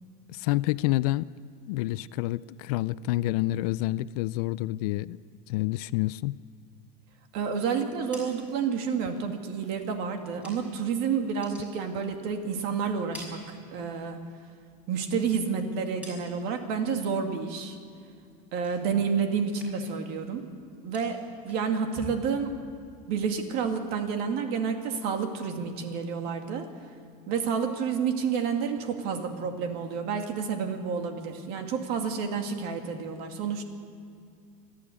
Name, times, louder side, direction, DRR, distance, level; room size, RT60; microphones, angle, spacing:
voice 1, 0.3-1.3 1.6-5.2 5.5-6.4, left 17 dB, 80° left, 17 dB, 0.5 m, -28 dB
voice 2, 7.3-14.2 14.9-17.8 18.5-20.4 20.8-21.2 21.4-22.6 23.1-26.7 27.3-33.6, right 6 dB, 50° right, 5 dB, 2.3 m, -29 dB
sound 1, 8.0-10.9 11.2-12.5 12.8-14.2 14.5-16.7 17.0-17.5 17.8-19.2 19.4-20.0 20.3-23.1, left 1 dB, 5° right, 6.0 m, -50 dB
29.0 x 11.5 x 8.5 m, 2.3 s
cardioid pair, 170°, 20 cm